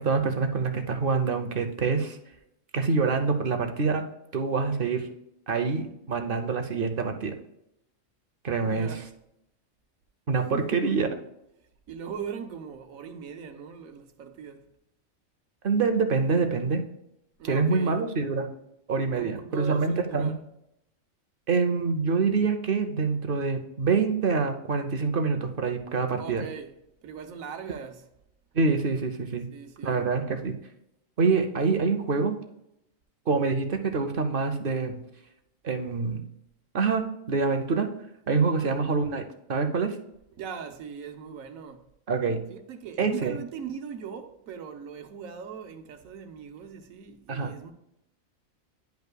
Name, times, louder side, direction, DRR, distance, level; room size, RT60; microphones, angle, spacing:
voice 1, 0.0-2.2 2.7-4.0 4.3-5.1 5.5-7.3 8.4-9.0 10.3-11.1 15.6-16.8 17.5-18.5 18.9-20.3 21.5-26.5 28.5-29.5 29.8-30.5 31.2-32.4 33.3-35.0 35.6-36.2 36.7-37.9 38.3-40.0 42.1-42.4 43.0-43.4 47.3-47.5, right 4 dB, 50° right, 0.8 m, -26 dB
voice 2, 8.6-9.1 10.5-10.8 11.9-14.7 17.4-18.0 19.1-20.4 26.2-26.8 27.0-28.1 29.5-30.1 38.6-38.9 40.4-41.9 42.5-47.7, right 7 dB, 85° right, 1.2 m, -40 dB
10.5 x 5.4 x 2.2 m
omnidirectional pair, 1.4 m